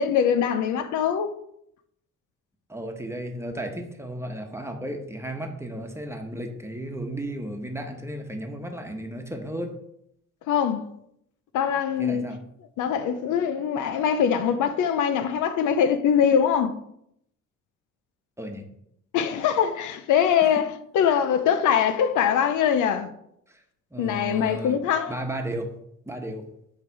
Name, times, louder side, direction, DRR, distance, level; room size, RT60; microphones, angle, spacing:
voice 1, 0.0-1.3 10.5-10.8 11.5-12.3 12.8-16.7 19.1-23.1 24.0-25.2, left 8 dB, 80° left, 0.7 m, -23 dB
voice 2, 2.7-9.7 12.0-12.4 18.4-18.6 23.5-23.6 23.9-24.8 25.1-25.7 26.1-26.4, right 1 dB, 10° right, 1.1 m, -34 dB
8.9 x 3.3 x 4.6 m
cardioid pair, 90°, 30 cm